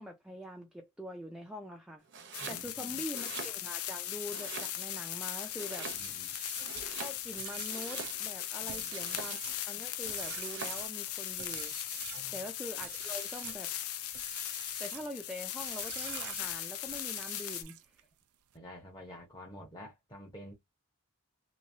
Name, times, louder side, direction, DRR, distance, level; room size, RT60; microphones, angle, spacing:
voice 1, 0.0-2.0 2.5-6.2 7.0-9.4 9.7-11.8 12.3-13.7 14.8-18.0, equal, 5° right, 0.5 m, -44 dB
Domestic sounds home sounds, 2.1-2.7 3.0-3.9 4.3-5.1 5.5-6.3 6.6-8.4 8.9-9.6 10.2-10.9, right 6 dB, 55° right, 0.7 m, -45 dB
sound 1, 2.3-17.6, left 12 dB, 80° left, 0.5 m, -39 dB
voice 2, 2.4-3.0 5.9-6.3 8.6-9.3 12.2-12.4 18.5-20.5, equal, 20° left, 1.0 m, -50 dB
sound 2, 5.9-12.3 12.8-13.6 14.1-15.1 15.6-18.0, right 12 dB, 85° right, 0.5 m, -47 dB
3.1 x 2.8 x 2.7 m
head